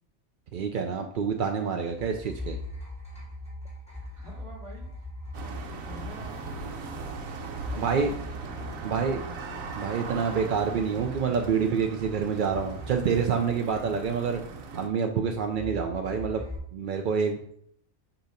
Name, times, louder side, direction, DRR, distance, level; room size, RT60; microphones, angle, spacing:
voice 1, 0.5-2.6 7.8-8.1 8.8-9.2 9.8-14.4 14.7-16.4 16.7-17.4, right 6 dB, 60° right, 4 dB, 0.5 m, -27 dB
sound 1, 1.9-12.2 12.5-14.3 15.5-16.6, left 2 dB, 5° left, 2.2 m, -42 dB
voice 2, 4.0-4.9 5.6-6.3 7.4-9.6, right 1 dB, 20° right, -2 dB, 2.1 m, -47 dB
sound 2, 5.3-14.9, right 4 dB, 80° right, 1.2 m, -39 dB
8.0 x 2.9 x 5.0 m, 0.68 s
omnidirectional pair, 1.4 m